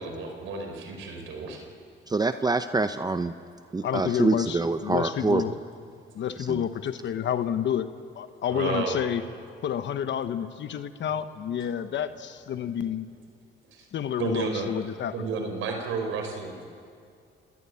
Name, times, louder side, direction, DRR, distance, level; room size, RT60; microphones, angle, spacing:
voice 1, 0.0-1.6 8.5-9.0 13.7-13.9 14.2-14.7 15.1-16.6, right 4 dB, 90° right, 4 dB, 4.6 m, -31 dB
voice 2, 2.1-3.3 3.7-5.4 6.5-6.6, right 3 dB, 20° right, 10 dB, 0.7 m, -25 dB
voice 3, 3.8-5.5 6.1-7.9 8.1-9.2 9.6-13.1 13.9-15.1, left 9 dB, 65° left, 10 dB, 1.1 m, -29 dB
30.0 x 18.5 x 8.4 m, 2.3 s
cardioid pair, 90°, 20 cm